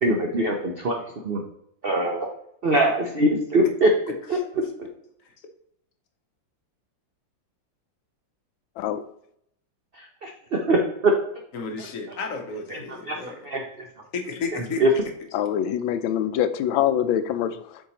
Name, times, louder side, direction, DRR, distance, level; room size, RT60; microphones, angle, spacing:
voice 1, 0.0-0.9 1.3-1.4 1.8-2.3 2.6-3.9 4.3-4.4 10.2-10.3 10.7-10.8 12.7-12.8 13.1-13.2 13.5-13.9 14.5-14.9, right 1 dB, 80° right, 1 dB, 0.5 m, -22 dB
voice 2, 11.5-12.8 13.2-13.3 14.1-14.8, left 4 dB, 55° left, 4 dB, 1.0 m, -31 dB
voice 3, 15.3-17.8, left 10 dB, 85° left, 11 dB, 1.3 m, -24 dB
7.3 x 4.6 x 2.9 m, 0.71 s
omnidirectional pair, 2.1 m